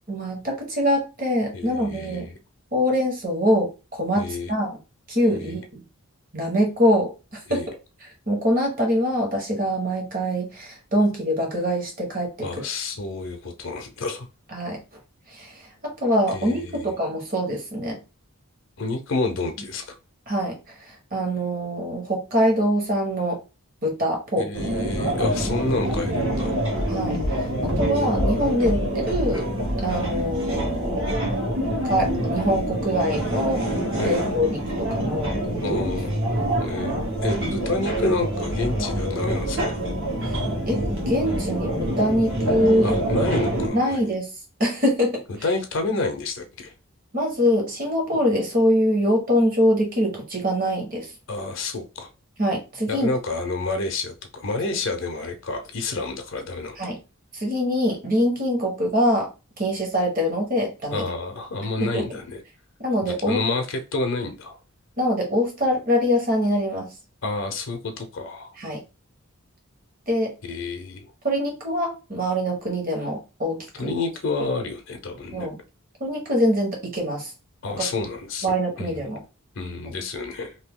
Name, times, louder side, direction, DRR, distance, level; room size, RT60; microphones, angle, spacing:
voice 1, 0.1-2.3 2.7-4.8 5.1-5.8 6.3-7.6 8.0-12.3 14.5-14.8 15.3-18.0 20.3-23.4 23.8-24.5 26.9-29.5 29.8-31.1 31.8-33.6 34.0-35.4 35.7-35.8 40.2-40.4 40.7-43.0 43.7-44.3 44.6-45.2 47.1-51.1 52.4-53.1 56.8-57.0 57.3-59.3 59.6-61.0 61.8-62.0 62.8-63.4 65.0-66.9 68.6-68.8 70.1-70.3 71.2-73.9 75.3-75.5 76.0-77.3 77.8-77.9 78.4-79.2, equal, 40° right, 1.3 m, -24 dB
voice 2, 1.5-2.4 4.2-4.5 5.3-5.6 7.5-7.7 12.4-14.3 16.3-16.9 18.8-19.9 24.4-26.6 34.0-34.2 35.6-36.1 36.6-39.7 42.8-44.1 45.4-46.7 51.3-52.1 52.9-56.8 60.9-62.4 63.3-64.6 67.2-68.5 70.4-71.1 73.8-75.5 77.6-79.1 79.6-80.6, left 3 dB, 55° left, 0.6 m, -29 dB
sound 1, 24.5-43.7, right 1 dB, 60° right, 1.4 m, -26 dB
2.8 x 2.7 x 3.6 m
head